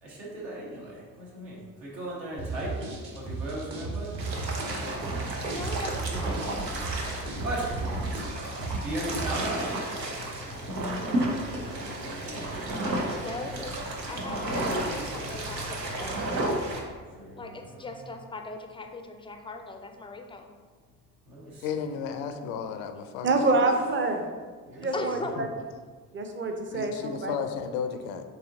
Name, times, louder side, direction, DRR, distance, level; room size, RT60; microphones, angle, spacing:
voice 1, 0.0-2.8 3.1-4.1 7.4-7.7 8.8-9.7 17.2-18.0 21.3-21.7 22.1-22.3 23.2-23.7 24.7-25.2, right 1 dB, 70° right, -5 dB, 1.4 m, -37 dB
sound 1, 2.4-9.5, right 3 dB, 50° right, 1.4 m, -35 dB
sound 2, 4.2-16.8, right 1 dB, 90° right, 0.5 m, -32 dB
voice 2, 5.5-6.9 11.5-12.8 13.2-13.8 14.1-16.5 17.3-20.5 24.9-25.3, left 3 dB, 10° left, 5 dB, 0.4 m, -40 dB
voice 3, 21.6-23.4 25.4-25.5 26.7-28.3, left 6 dB, 65° left, 8 dB, 0.5 m, -33 dB
voice 4, 23.2-24.2 24.8-25.5 26.1-27.3, right 2 dB, 25° right, 5 dB, 0.6 m, -26 dB
7.2 x 2.8 x 2.6 m, 1.5 s
figure-of-eight pair, 40°, 48 cm